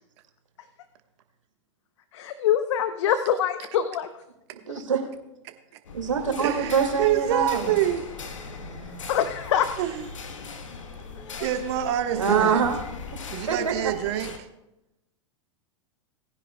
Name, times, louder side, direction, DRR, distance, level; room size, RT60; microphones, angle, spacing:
voice 1, 2.1-4.1 9.1-9.7 11.3-11.5, left 9 dB, 65° left, 11 dB, 0.7 m, -24 dB
voice 2, 4.7-5.0 5.9-7.7 8.6-9.0 12.1-12.8 13.5-13.9, right 6 dB, 85° right, 3 dB, 2.2 m, -25 dB
sound 1, 5.8-14.4, left 4 dB, 85° left, 1.5 m, -39 dB
voice 3, 6.4-8.0 9.8-10.1 11.4-12.6 13.3-14.3, right 12 dB, 60° right, 6 dB, 1.3 m, -26 dB
19.0 x 10.0 x 2.3 m, 0.91 s
hypercardioid pair, 100°, 16 cm